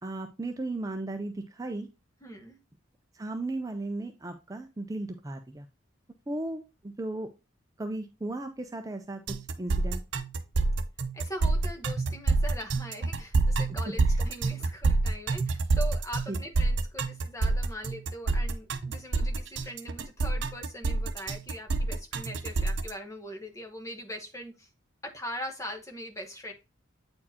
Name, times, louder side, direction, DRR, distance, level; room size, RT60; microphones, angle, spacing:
voice 1, 0.0-1.9 3.1-5.7 6.3-7.3 7.8-10.0 13.9-14.2 16.3-16.4, right 2 dB, 15° right, 6 dB, 0.4 m, -36 dB
voice 2, 2.2-2.6 11.1-24.7 25.0-26.5, equal, 15° left, 4 dB, 1.0 m, -41 dB
sound 1, 9.3-22.9, right 3 dB, 60° right, 0.6 m, -27 dB
8.5 x 4.5 x 2.8 m, 0.27 s
head